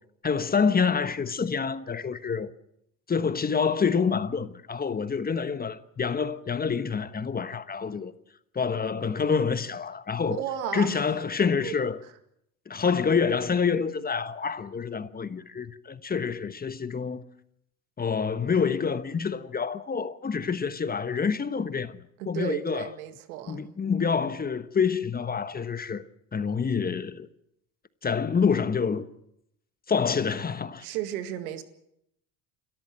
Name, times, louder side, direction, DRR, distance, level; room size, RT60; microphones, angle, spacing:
voice 1, 0.2-2.5 3.1-8.1 8.5-10.4 10.7-12.0 12.7-17.2 18.0-22.0 22.3-22.9 23.5-26.0 26.3-27.3 28.0-29.1 29.9-30.9, left 6 dB, 20° left, 1.2 m, -27 dB
voice 2, 10.3-11.0 11.6-11.8 22.2-23.7 30.8-31.6, right 11 dB, 85° right, 2.1 m, -33 dB
28.5 x 13.5 x 7.7 m
supercardioid pair, 95°, 42 cm